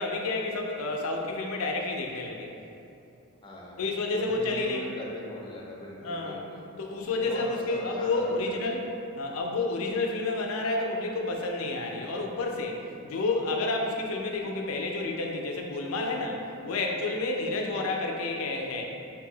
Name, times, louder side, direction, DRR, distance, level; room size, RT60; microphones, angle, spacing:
voice 1, 0.0-2.5 3.8-4.8 6.0-6.4 6.8-8.9 9.2-18.8, left 2 dB, 75° left, 1 dB, 0.4 m, -30 dB
voice 2, 3.4-3.8 4.1-6.6 7.1-8.6, left 1 dB, 20° left, -4 dB, 0.5 m, -40 dB
2.7 x 2.6 x 3.8 m, 2.7 s
head